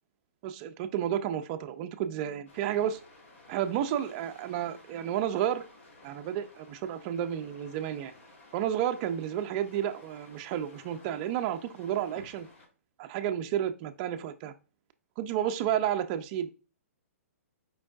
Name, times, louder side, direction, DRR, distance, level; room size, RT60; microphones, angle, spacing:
voice 1, 0.4-3.0 3.5-5.7 6.0-8.1 8.5-12.5 13.0-14.5 15.2-16.5, right 10 dB, 35° right, 0.4 m, -31 dB
sound 1, 2.5-12.7, left 2 dB, 55° left, 1.7 m, -55 dB
5.0 x 4.5 x 2.4 m
hypercardioid pair, 145°, 8 cm